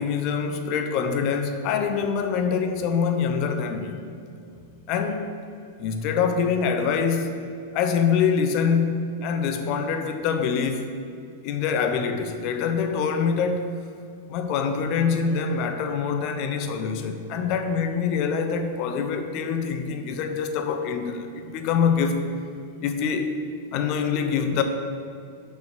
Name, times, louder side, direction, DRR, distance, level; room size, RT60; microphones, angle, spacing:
voice 1, 0.0-4.0 4.5-4.6 4.9-5.3 5.8-7.3 7.7-11.0 11.4-13.7 14.3-22.2 22.8-23.4 23.7-24.6, left 6 dB, 45° left, 7 dB, 0.8 m, -25 dB
6.1 x 5.6 x 6.8 m, 2.4 s
figure-of-eight pair, 95°, 0 cm